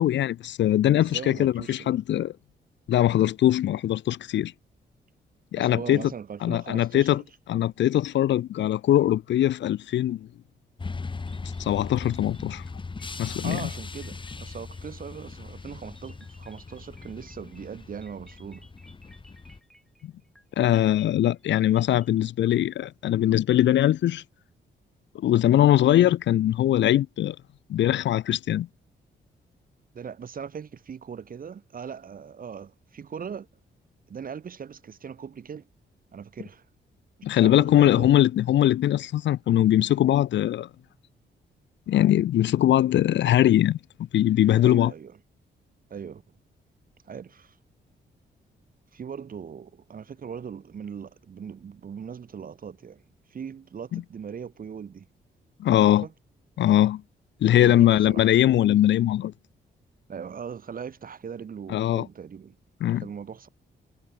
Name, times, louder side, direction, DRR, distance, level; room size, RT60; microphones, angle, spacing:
voice 1, 0.0-2.3 2.9-4.5 5.5-6.0 6.4-7.2 7.5-10.3 11.6-12.6 13.2-13.7 20.0-20.1 20.6-24.2 25.1-27.4 27.7-28.7 37.2-40.7 41.9-43.8 44.1-44.9 53.9-54.0 55.6-56.0 56.6-57.0 57.4-59.3 61.7-62.1 62.8-63.0, left 12 dB, 75° left, 0.7 m, -21 dB
voice 2, 1.0-2.0 5.6-7.2 13.4-18.7 29.9-33.5 34.1-35.7 36.1-36.6 37.3-38.2 44.6-45.2 45.9-46.2 47.0-47.6 48.9-53.0 53.3-55.1 55.8-56.1 57.5-58.3 60.1-62.6 62.9-63.5, right 7 dB, 50° right, 1.2 m, -39 dB
sound 1, 10.8-19.6, left 4 dB, 25° left, 1.2 m, -39 dB
sound 2, 11.3-15.3 16.0-22.2, equal, ahead, 5.6 m, -58 dB
cardioid pair, 80°, 19 cm